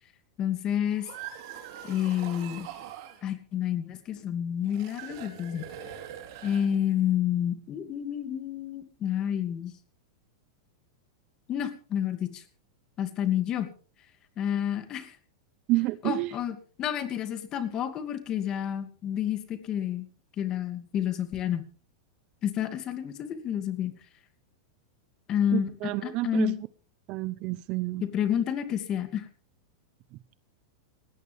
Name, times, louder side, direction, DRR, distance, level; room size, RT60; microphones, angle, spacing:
voice 1, 0.4-1.1 1.9-2.7 3.2-5.7 6.4-9.7 11.5-12.4 13.0-13.7 14.4-15.2 16.0-20.0 20.4-21.6 22.4-24.0 25.3-25.7 26.0-26.6 28.0-29.3, left 10 dB, 25° left, 2.5 m, -29 dB
sound 1, 0.8-3.3 4.6-7.1, right 10 dB, 50° right, 3.9 m, -43 dB
voice 2, 15.7-16.3 25.5-26.5 27.1-28.0, right 19 dB, 35° right, 0.7 m, -29 dB
19.0 x 17.5 x 3.6 m
supercardioid pair, 160°, 2 cm